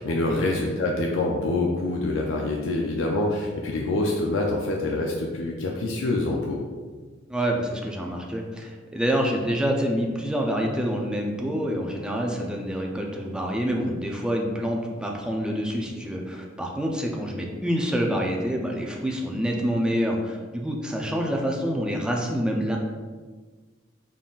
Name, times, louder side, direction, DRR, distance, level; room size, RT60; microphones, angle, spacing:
voice 1, 0.0-6.6, left 2 dB, 80° left, 0 dB, 0.4 m, -26 dB
voice 2, 7.3-22.8, equal, 5° right, 0 dB, 0.4 m, -27 dB
3.9 x 3.8 x 2.4 m, 1.4 s
head